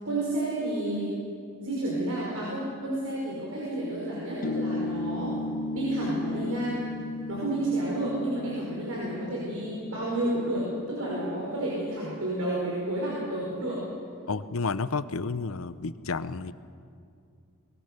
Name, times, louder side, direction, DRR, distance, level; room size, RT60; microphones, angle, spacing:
voice 1, 0.0-1.1 1.6-5.4 5.7-6.8 7.3-13.8, right 1 dB, 80° right, -5 dB, 5.6 m, -30 dB
sound 1, 4.4-11.4, left 2 dB, 40° left, 0.8 m, -35 dB
voice 2, 14.3-16.5, left 4 dB, 75° left, 14 dB, 0.8 m, -31 dB
22.5 x 22.0 x 6.8 m, 2.3 s
head